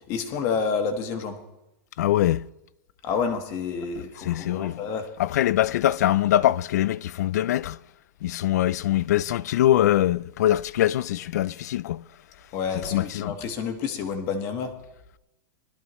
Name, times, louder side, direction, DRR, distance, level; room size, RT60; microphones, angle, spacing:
voice 1, 0.1-1.4 3.0-5.1 12.5-14.7, left 5 dB, 25° left, 1.3 m, -29 dB
voice 2, 2.0-2.5 4.3-4.8 5.2-7.8 8.2-12.0 12.9-13.3, left 13 dB, 55° left, 0.4 m, -23 dB
21.0 x 13.0 x 3.1 m
supercardioid pair, 175°, 10 cm